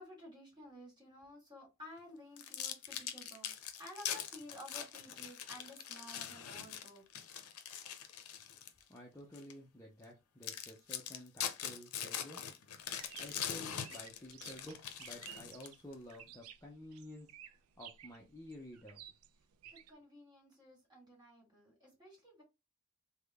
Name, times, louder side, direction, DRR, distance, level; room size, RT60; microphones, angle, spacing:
voice 1, 0.0-3.5 3.8-7.0 19.9-22.4, left 1 dB, 20° right, 1.7 m, -53 dB
sound 1, 2.4-8.8 9.3-9.5 10.0-10.1 10.4-15.9, left 9 dB, 90° left, 0.5 m, -43 dB
voice 2, 8.9-12.4 13.2-17.3 17.8-19.0, left 1 dB, 15° left, 0.5 m, -52 dB
sound 2, 12.9-19.9, right 10 dB, 80° right, 0.4 m, -55 dB
3.5 x 2.2 x 3.4 m
head